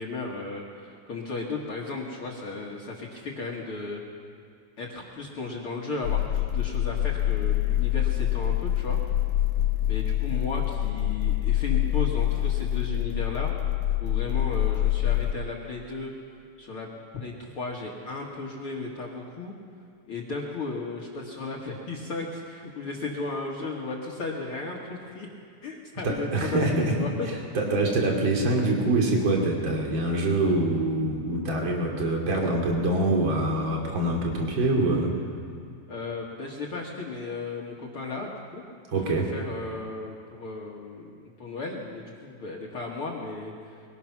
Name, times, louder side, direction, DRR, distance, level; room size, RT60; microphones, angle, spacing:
voice 1, 0.0-4.0 4.8-9.0 9.9-13.5 14.0-16.1 16.6-16.9 17.1-19.5 20.1-25.3 25.6-26.6 26.9-27.3 35.9-38.6 39.1-41.1 41.4-43.8, left 3 dB, 50° left, -2 dB, 2.4 m, -35 dB
sound 1, 6.0-15.3, left 13 dB, 90° left, 2.2 m, -26 dB
voice 2, 26.0-35.1 38.9-39.3, right 2 dB, 40° right, -1 dB, 3.4 m, -25 dB
22.5 x 20.0 x 6.0 m, 2.5 s
omnidirectional pair, 3.5 m